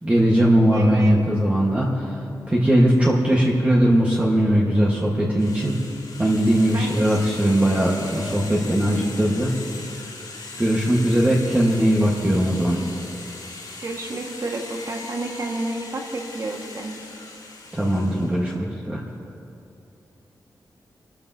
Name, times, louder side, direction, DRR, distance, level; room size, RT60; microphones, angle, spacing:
voice 1, 0.0-2.1 2.5-5.7 6.2-9.5 10.6-12.8 17.7-18.5 18.9-19.0, equal, 15° right, -4 dB, 1.4 m, -19 dB
voice 2, 0.7-1.2 6.7-7.2 13.8-16.9, right 2 dB, 50° right, 1 dB, 1.6 m, -30 dB
sound 1, 5.4-18.4, left 3 dB, 70° left, 2.8 m, -39 dB
28.5 x 13.5 x 2.8 m, 2.7 s
wide cardioid pair, 160°, 8 cm